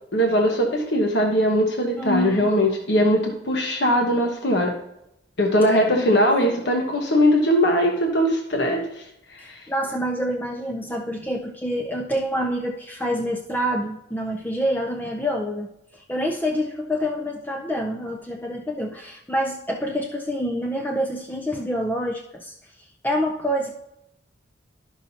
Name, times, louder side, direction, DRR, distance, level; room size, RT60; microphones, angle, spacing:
voice 1, 0.1-4.7 5.4-9.0 9.3-9.6, equal, 60° left, 1 dB, 1.2 m, -20 dB
voice 2, 2.0-2.5 5.9-6.2 9.4-23.7, equal, 10° left, 2 dB, 0.5 m, -27 dB
12.0 x 6.1 x 2.8 m, 0.83 s
head